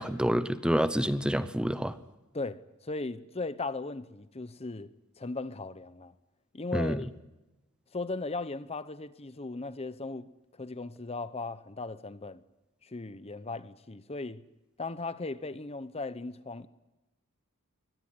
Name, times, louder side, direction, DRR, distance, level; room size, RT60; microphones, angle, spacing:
voice 1, 0.0-2.0 6.7-7.0, equal, 5° right, 0.8 m, -28 dB
voice 2, 2.3-4.9 5.2-6.1 6.5-7.1 7.9-12.4 12.8-14.4 14.8-16.7, left 3 dB, 30° left, 0.8 m, -37 dB
23.5 x 19.0 x 9.7 m
head